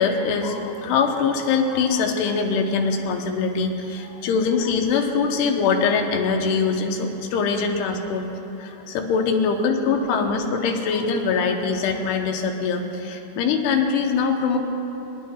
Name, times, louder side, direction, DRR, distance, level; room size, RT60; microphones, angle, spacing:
voice 1, 0.0-8.3 8.6-14.6, left 5 dB, 85° left, 3 dB, 3.0 m, -23 dB
29.0 x 10.5 x 2.3 m, 3.0 s
omnidirectional pair, 4.5 m